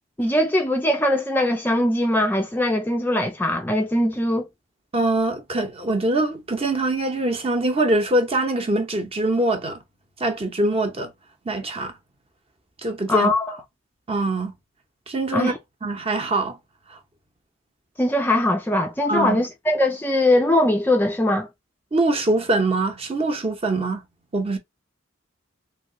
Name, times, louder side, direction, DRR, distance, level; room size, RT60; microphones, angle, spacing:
voice 1, 0.2-4.5 13.1-13.6 15.3-15.6 18.0-21.5, left 1 dB, 10° left, 0.3 m, -21 dB
voice 2, 4.9-9.8 10.2-11.1 11.5-11.9 12.8-13.3 14.1-14.5 15.1-15.5 15.8-16.6 19.1-19.4 21.9-24.0 24.3-24.6, right 2 dB, 30° right, 0.8 m, -23 dB
3.1 x 2.9 x 2.7 m
head